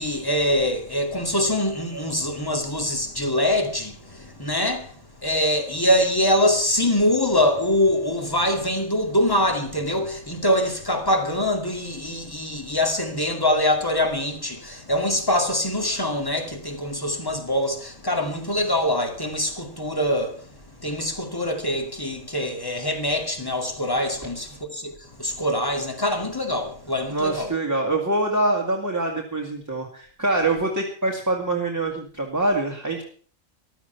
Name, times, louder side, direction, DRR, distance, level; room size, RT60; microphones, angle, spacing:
voice 1, 0.0-27.5, left 1 dB, 15° left, 2.3 m, -24 dB
voice 2, 27.1-33.0, right 2 dB, 15° right, 2.1 m, -24 dB
15.0 x 12.5 x 5.8 m
omnidirectional pair, 1.4 m